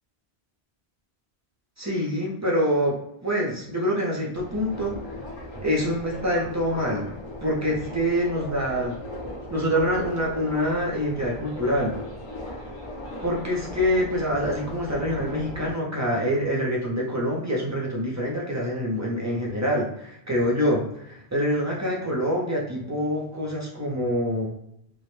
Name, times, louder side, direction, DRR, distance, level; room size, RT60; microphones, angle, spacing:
voice 1, 1.8-5.0 5.6-7.1 7.4-9.0 9.5-11.9 13.2-24.5, equal, 30° right, -3 dB, 0.3 m, -25 dB
Subway metro underground, 4.4-15.7, left 1 dB, 40° left, 0.5 m, -38 dB
2.1 x 2.0 x 3.0 m, 0.76 s
omnidirectional pair, 1.1 m